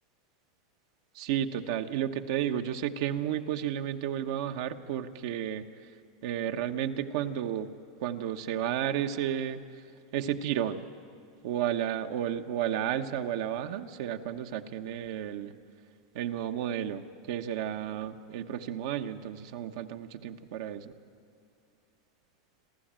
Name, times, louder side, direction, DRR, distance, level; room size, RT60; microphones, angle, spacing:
voice 1, 1.1-5.6 6.2-7.7 8.0-9.6 10.1-10.8 11.4-15.5 16.1-20.9, right 10 dB, 65° right, 6 dB, 1.1 m, -32 dB
27.0 x 13.0 x 8.9 m, 2.4 s
supercardioid pair, 120°, 2 cm